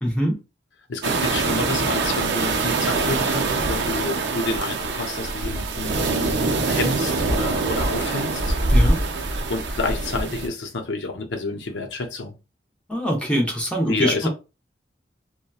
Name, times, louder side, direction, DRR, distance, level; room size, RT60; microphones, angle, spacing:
voice 1, 0.0-0.4 8.7-9.0 12.9-14.3, equal, 5° left, 0.7 m, -23 dB
voice 2, 0.9-8.5 9.3-12.3 13.9-14.3, left 3 dB, 85° left, 0.6 m, -29 dB
sound 1, 1.0-10.5, right 3 dB, 70° right, 0.5 m, -23 dB
2.8 x 2.2 x 2.3 m
head